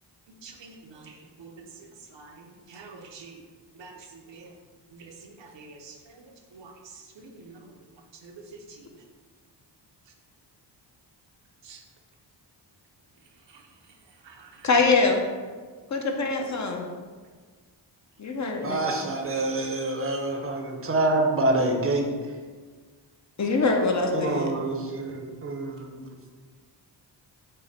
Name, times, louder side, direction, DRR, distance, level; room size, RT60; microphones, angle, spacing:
voice 1, 0.4-0.7 1.4-1.5 2.1-2.3 2.7-3.3 3.8-3.9 4.3-4.5 5.5-5.9 6.5-6.7 7.5-7.6 8.2-8.3 11.7-11.8 14.4-14.5, right 4 dB, 75° right, 2 dB, 0.7 m, -45 dB
voice 2, 14.6-15.2 15.9-16.8 18.2-18.8 23.4-24.5, left 3 dB, 40° left, 2 dB, 0.5 m, -23 dB
voice 3, 18.6-22.0 24.1-26.0, right 2 dB, 30° right, 2 dB, 0.6 m, -26 dB
5.4 x 2.1 x 4.0 m, 1.5 s
cardioid pair, 95°, 44 cm